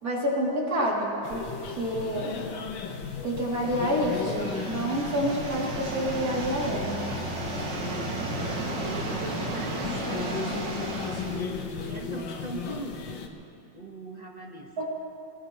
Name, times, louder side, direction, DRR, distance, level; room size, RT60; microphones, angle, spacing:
voice 1, 0.0-1.5 1.8-2.3 3.2-7.0 14.8-14.9, equal, 50° right, -4 dB, 3.3 m, -28 dB
sound 1, 1.2-13.3, left 5 dB, 75° left, 1.8 m, -36 dB
sound 2, 3.4-11.5, right 2 dB, 65° right, 2.5 m, -34 dB
voice 2, 7.8-8.2 8.6-10.9 11.9-13.4 13.7-14.8, right 2 dB, 25° right, 1 dB, 1.3 m, -40 dB
24.5 x 18.5 x 3.1 m, 2.6 s
omnidirectional pair, 2.1 m